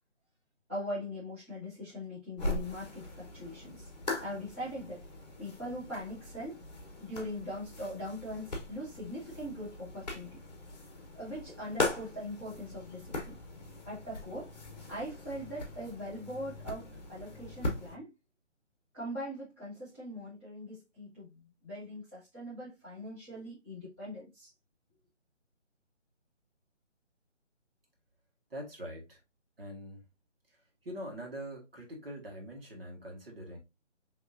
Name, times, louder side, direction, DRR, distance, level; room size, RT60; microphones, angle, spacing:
voice 1, 0.7-3.9 4.2-5.0 5.4-6.6 7.0-10.4 11.1-13.4 13.8-14.5 14.9-18.1 18.9-24.5, equal, 10° right, 0.9 m, -41 dB
sound 1, 2.4-18.0, left 2 dB, 35° left, 1.0 m, -40 dB
voice 2, 28.5-29.2 29.6-30.0 30.8-33.6, equal, 50° right, 1.6 m, -43 dB
4.9 x 3.0 x 2.5 m
hypercardioid pair, 170°, 37 cm